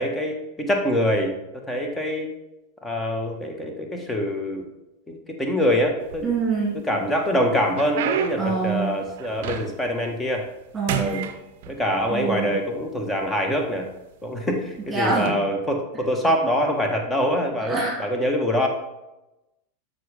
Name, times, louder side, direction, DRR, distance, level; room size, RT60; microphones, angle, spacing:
voice 1, 0.0-1.3 1.7-2.3 2.8-4.7 5.1-6.2 6.9-10.4 11.0-11.3 11.7-13.9 14.2-18.7, equal, 10° left, 3 dB, 1.5 m, -24 dB
sound 1, 6.0-6.8 7.2-10.0 10.3-10.6 10.9-12.1 12.9-13.0 13.7-13.9 15.1-15.3, right 8 dB, 50° right, 0.7 m, -30 dB
voice 2, 6.2-6.8 8.4-8.9 10.7-11.3 12.1-12.6 14.9-15.4 17.6-18.0, right 4 dB, 15° right, -5 dB, 2.8 m, -25 dB
12.5 x 5.6 x 3.6 m, 0.97 s
figure-of-eight pair, 90°, 0 cm